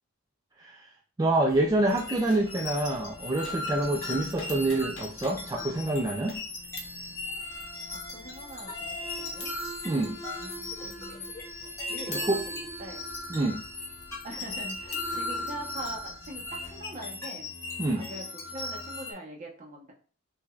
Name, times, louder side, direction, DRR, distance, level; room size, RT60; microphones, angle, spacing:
voice 1, 0.6-0.9 1.2-6.4 9.8-10.2 12.1-12.4 13.3-13.6 17.8-18.1, right 2 dB, 20° right, 1 dB, 0.3 m, -27 dB
sound 1, 1.5-16.8, equal, 35° left, 0.8 m, -46 dB
sound 2, 1.9-19.1, left 2 dB, 15° left, 1.3 m, -38 dB
Gunshot gunfire, 2.3-2.5 3.4-3.6 4.4-5.5 6.3-6.4, left 3 dB, 70° left, 1.1 m, -45 dB
voice 2, 7.9-9.5 10.3-11.3 11.9-13.0 14.2-17.5 18.0-19.9, right 1 dB, 40° right, -1 dB, 1.0 m, -43 dB
4.9 x 2.6 x 2.3 m, 0.41 s
head